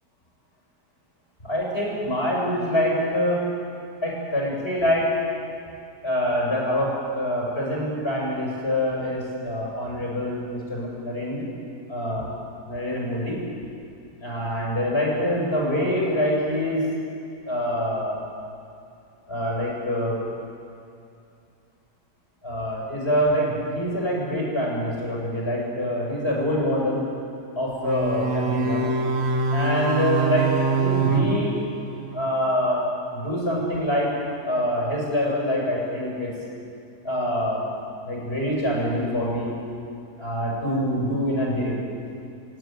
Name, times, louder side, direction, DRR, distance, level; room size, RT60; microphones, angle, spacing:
voice 1, 1.4-3.5 4.0-5.1 6.0-11.4 11.9-12.3 12.7-13.4 14.2-16.8 17.5-18.2 19.3-20.2 22.4-27.0 27.6-28.9 29.5-30.5 30.8-31.6 32.1-32.9 33.1-34.1 34.4-36.3 37.0-37.6 38.0-39.5 40.2-41.8, equal, 40° left, -3 dB, 7.5 m, -25 dB
sound 1, 27.8-32.3, right 4 dB, 45° right, 1.7 m, -24 dB
29.0 x 16.5 x 9.4 m, 2.6 s
omnidirectional pair, 1.6 m